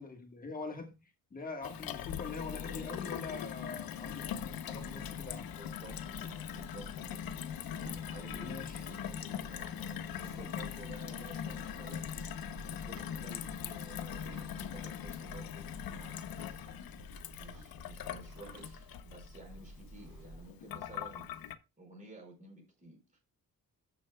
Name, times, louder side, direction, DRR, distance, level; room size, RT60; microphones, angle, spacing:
voice 1, 0.0-5.5 8.4-8.8, left 3 dB, 25° left, 1.5 m, -44 dB
Gurgling / Water tap faucet / Sink (filling or washing), 1.6-21.5, left 9 dB, 80° left, 0.8 m, -41 dB
voice 2, 2.6-3.2 4.8-5.1 5.4-7.2 7.8-12.2 12.6-16.8 17.3-21.4 21.8-23.2, right 1 dB, 20° right, 5.2 m, -53 dB
Livestock farm animals working animals, 4.0-20.5, right 1 dB, 65° right, 4.5 m, -52 dB
14.0 x 6.9 x 2.3 m
wide cardioid pair, 160°, 34 cm